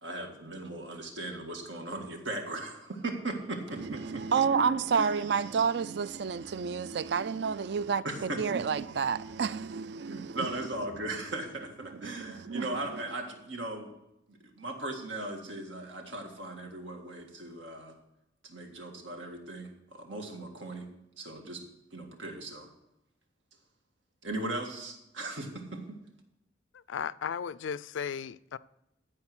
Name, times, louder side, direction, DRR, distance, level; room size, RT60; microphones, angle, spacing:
voice 1, 0.0-4.2 4.9-5.2 5.5-5.6 8.0-8.4 10.1-13.9 14.3-18.0 18.4-20.9 21.2-21.6 21.9-22.7 24.2-26.0, right 2 dB, 90° right, 1.8 m, -38 dB
voice 2, 3.7-10.7 11.8-13.0, right 6 dB, 65° right, 0.4 m, -30 dB
voice 3, 26.7-28.6, left 7 dB, 90° left, 0.4 m, -35 dB
14.5 x 4.8 x 6.1 m
head